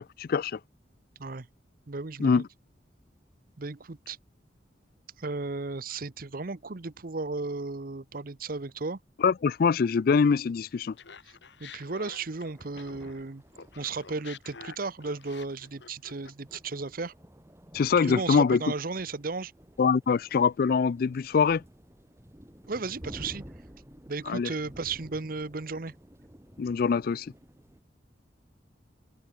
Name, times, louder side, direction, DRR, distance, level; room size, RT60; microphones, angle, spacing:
voice 1, 0.2-0.6 2.2-2.4 9.2-10.9 17.7-18.6 19.8-21.6 24.3-24.5 26.6-27.3, left 5 dB, 55° left, 0.4 m, -24 dB
voice 2, 1.9-2.4 3.6-4.2 5.2-9.0 11.6-13.4 13.8-17.1 18.0-19.5 22.7-23.4 24.1-25.9, right 3 dB, 55° right, 0.9 m, -35 dB
Laughter, 11.0-13.2 13.5-16.8, left 5 dB, 80° left, 1.4 m, -48 dB
sound 1, 12.3-27.8, equal, 15° right, 2.1 m, -52 dB
open air
head